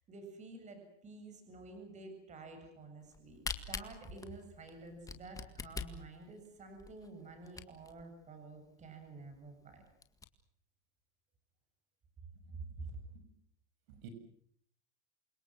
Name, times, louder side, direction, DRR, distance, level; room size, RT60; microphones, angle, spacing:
voice 1, 0.1-3.4 3.7-9.8 12.5-13.0, right 3 dB, 20° right, 6 dB, 7.5 m, -50 dB
Camera, 3.1-8.0 8.6-8.7 8.9-9.0 9.4-9.5 9.9-10.2, left 4 dB, 10° left, 1.9 m, -43 dB
voice 2, 12.5-13.3 13.9-14.1, right 7 dB, 55° right, 9 dB, 7.0 m, -55 dB
29.0 x 25.5 x 6.2 m, 0.65 s
supercardioid pair, 160°, 35 cm